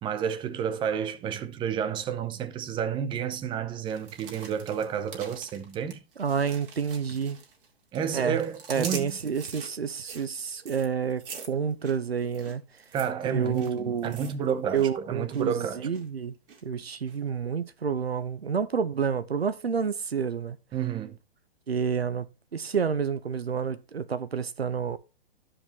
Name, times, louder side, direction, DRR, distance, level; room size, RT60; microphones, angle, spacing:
voice 1, 0.0-6.0 7.9-9.1 12.9-15.9 20.7-21.2, right 8 dB, 15° right, 0.7 m, -30 dB
sound 1, 3.9-7.7 7.9-14.9 15.1-15.5 15.9-16.6 17.1-17.2, right 5 dB, 65° right, 2.2 m, -44 dB
voice 2, 6.2-7.4 8.1-8.4 8.7-12.6 13.3-14.2 14.7-16.3 16.6-20.6 21.7-25.0, right 6 dB, 90° right, 0.8 m, -29 dB
13.0 x 5.0 x 2.9 m
figure-of-eight pair, 125°, 30 cm